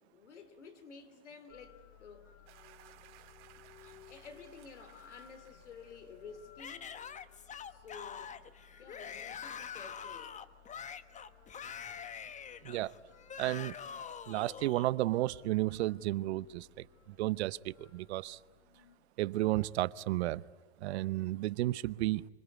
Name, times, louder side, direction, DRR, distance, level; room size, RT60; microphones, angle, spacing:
voice 1, 0.1-2.3 3.8-6.9 7.7-8.4 8.8-10.4, left 5 dB, 85° left, 3.2 m, -52 dB
sound 1, 1.5-19.0, left 9 dB, 55° left, 3.4 m, -60 dB
sound 2, 2.5-7.1, right 13 dB, 50° right, 2.9 m, -61 dB
Yell / Screaming, 6.6-14.9, left 7 dB, 20° left, 1.1 m, -45 dB
voice 2, 13.4-13.7 14.3-18.4 19.2-20.4 20.8-22.3, right 16 dB, 70° right, 0.8 m, -33 dB
26.0 x 24.0 x 9.4 m
hypercardioid pair, 105°, 34 cm